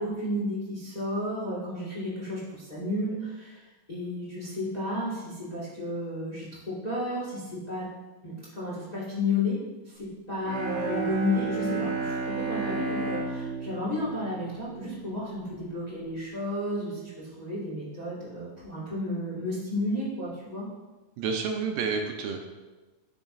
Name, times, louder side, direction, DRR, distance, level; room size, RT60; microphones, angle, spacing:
voice 1, 0.0-7.9 8.2-20.7, left 1 dB, 65° left, -8 dB, 0.4 m, -32 dB
Bowed string instrument, 10.4-15.3, right 3 dB, 50° right, 1.6 m, -32 dB
voice 2, 21.2-22.4, right 5 dB, 80° right, 4 dB, 2.1 m, -29 dB
11.0 x 6.2 x 2.5 m, 1.2 s
omnidirectional pair, 4.3 m